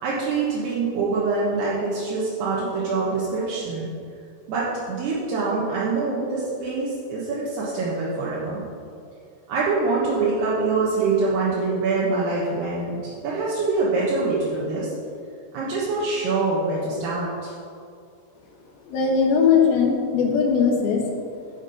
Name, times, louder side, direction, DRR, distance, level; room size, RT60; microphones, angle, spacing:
voice 1, 0.0-3.9 4.5-8.6 9.5-13.0 13.2-14.9 15.5-17.5, right 3 dB, 75° right, -7 dB, 3.3 m, -24 dB
voice 2, 18.9-21.0, left 6 dB, 70° left, 0 dB, 2.9 m, -19 dB
13.5 x 5.9 x 5.4 m, 2.4 s
omnidirectional pair, 4.9 m